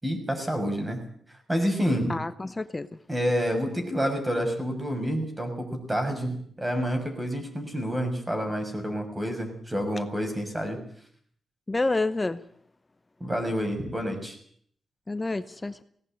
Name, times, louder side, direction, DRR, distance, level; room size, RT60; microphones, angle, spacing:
voice 1, 0.0-1.0 1.5-2.1 3.1-10.8 13.2-14.4, equal, 15° right, 5 dB, 6.5 m, -28 dB
voice 2, 2.1-2.9 11.7-12.4 15.1-15.8, left 2 dB, 25° left, 12 dB, 1.0 m, -28 dB
18.0 x 18.0 x 9.1 m, 0.62 s
cardioid pair, 95°, 0 cm